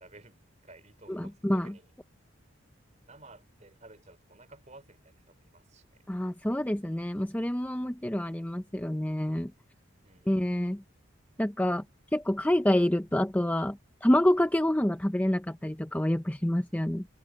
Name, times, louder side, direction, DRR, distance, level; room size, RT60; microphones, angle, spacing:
voice 1, 0.0-1.9 3.1-6.0 7.8-8.2 10.0-10.5, right 2 dB, 35° right, 5.0 m, -54 dB
voice 2, 1.1-1.7 6.1-9.5 10.3-10.8 11.4-11.8 12.1-17.1, left 1 dB, 10° left, 0.6 m, -27 dB
head